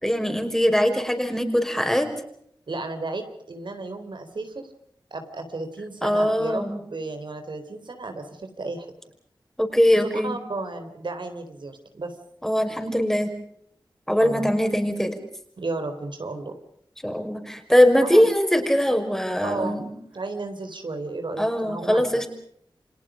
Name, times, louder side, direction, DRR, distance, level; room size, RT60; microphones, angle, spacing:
voice 1, 0.0-2.1 6.0-6.8 9.6-10.4 12.4-13.3 14.1-15.2 17.0-19.9 21.4-22.3, equal, 5° left, 6 dB, 5.6 m, -21 dB
voice 2, 2.7-4.7 5.1-8.9 10.0-12.1 14.2-14.6 15.6-16.6 18.0-18.3 19.4-19.8 20.1-22.3, right 3 dB, 70° right, 7 dB, 4.1 m, -33 dB
30.0 x 25.5 x 5.1 m, 0.68 s
wide cardioid pair, 60°, 8 cm